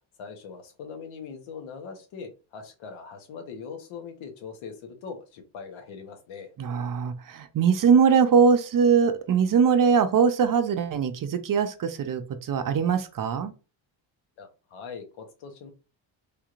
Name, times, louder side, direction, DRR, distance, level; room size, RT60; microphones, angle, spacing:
voice 1, 0.2-6.5 14.4-15.7, left 5 dB, 80° left, 1.1 m, -41 dB
voice 2, 6.6-13.5, right 6 dB, 45° right, 0.6 m, -22 dB
3.5 x 2.9 x 2.4 m
cardioid pair, 80°, 47 cm